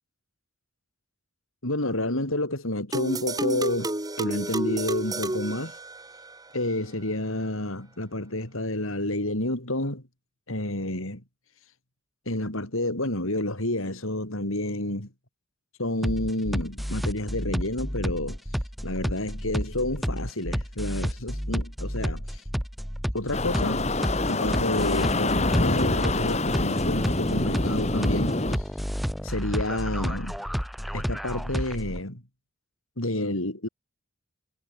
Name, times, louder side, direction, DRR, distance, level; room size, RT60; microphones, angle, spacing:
voice 1, 1.6-5.7 6.5-10.0 10.5-11.2 12.3-15.1 15.8-18.4 18.8-22.2 23.1-23.9 24.3-28.4 29.2-30.4 30.9-32.2 33.0-33.7, left 1 dB, 75° left, 5.8 m, -29 dB
sound 1, 2.9-6.4, right 2 dB, 20° right, 1.3 m, -30 dB
sound 2, 16.0-32.0, equal, ahead, 2.0 m, -31 dB
sound 3, 23.3-28.6, left 2 dB, 30° left, 1.9 m, -26 dB
head